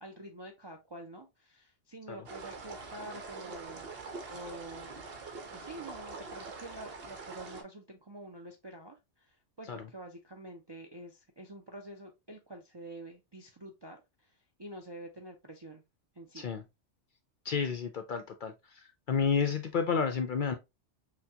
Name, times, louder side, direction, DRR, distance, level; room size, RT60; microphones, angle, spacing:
voice 1, 0.0-4.0 4.3-5.1 5.5-15.8 16.2-16.5, right 1 dB, 40° right, 0.4 m, -47 dB
sound 1, 2.3-7.6, right 4 dB, 60° right, 1.1 m, -44 dB
voice 2, 17.4-20.5, left 6 dB, 55° left, 0.6 m, -31 dB
5.7 x 2.2 x 2.7 m
omnidirectional pair, 1.2 m